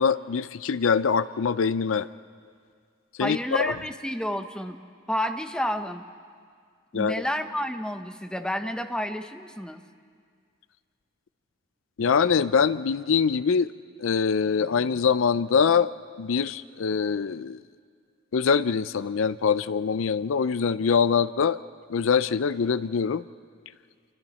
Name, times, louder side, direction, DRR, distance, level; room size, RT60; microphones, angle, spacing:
voice 1, 0.0-2.1 3.2-3.7 6.9-7.2 12.0-13.7 14.0-15.9 16.2-17.6 18.3-21.6 21.9-23.2, left 6 dB, 80° left, 16 dB, 0.5 m, -23 dB
voice 2, 3.2-4.8 5.1-6.0 6.9-9.8, equal, 5° left, 7 dB, 1.0 m, -30 dB
29.0 x 24.5 x 4.3 m, 2.1 s
head